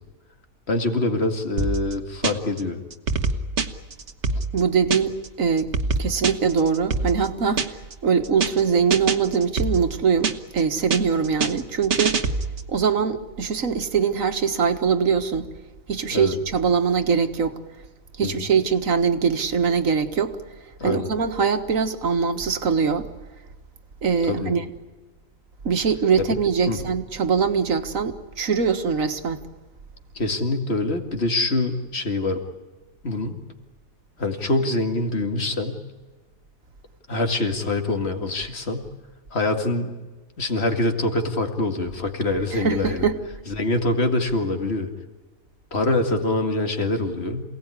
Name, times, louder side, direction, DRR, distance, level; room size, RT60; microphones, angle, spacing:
voice 1, 0.7-2.8 16.1-16.4 18.2-18.5 20.8-21.1 24.3-24.5 26.7-26.8 30.1-32.4 33.0-33.4 34.2-35.8 37.1-38.9 39.3-39.9 40.4-43.1 43.5-44.9 45.7-47.4, left 2 dB, 50° left, 5 dB, 2.4 m, -24 dB
sound 1, 1.6-2.6 2.9-5.3 5.6-7.9 8.2-8.6 8.9-10.6 10.9-12.7, right 4 dB, 55° right, 1.5 m, -25 dB
voice 2, 4.5-5.7 6.0-12.1 12.7-15.5 15.9-17.6 18.2-20.3 20.8-23.1 24.0-24.7 25.6-29.4 42.5-43.2, right 6 dB, 70° right, 8 dB, 1.9 m, -22 dB
27.5 x 18.0 x 9.9 m, 1.3 s
omnidirectional pair, 1.5 m